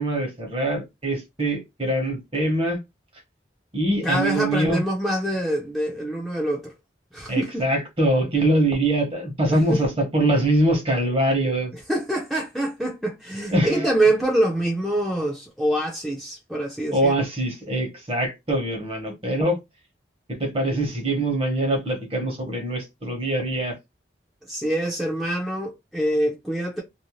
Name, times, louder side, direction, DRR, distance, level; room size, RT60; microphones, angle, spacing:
voice 1, 0.0-2.8 3.7-4.8 7.3-11.7 13.5-13.9 16.9-19.6 20.3-23.8, right 1 dB, 35° right, 1.0 m, -23 dB
voice 2, 4.0-6.7 7.1-7.7 9.5-9.8 11.9-17.1 24.5-26.8, right 1 dB, ahead, 0.5 m, -25 dB
2.6 x 2.1 x 3.0 m
head